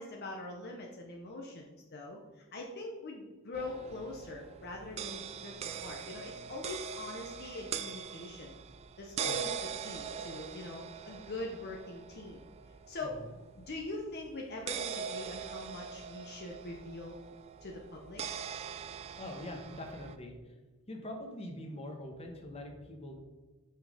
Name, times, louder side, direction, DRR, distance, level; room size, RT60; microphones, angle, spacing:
voice 1, 0.0-5.5 5.8-8.5 9.0-9.5 9.8-12.5 12.9-13.2 13.6-17.2 17.6-18.2, left 2 dB, 50° left, 0 dB, 0.8 m, -43 dB
sound 1, 3.5-20.2, right 7 dB, 30° right, 0.3 m, -42 dB
voice 2, 19.2-20.5 20.9-23.2, left 1 dB, 30° left, 2 dB, 1.1 m, -43 dB
5.8 x 5.6 x 4.9 m, 1.3 s
head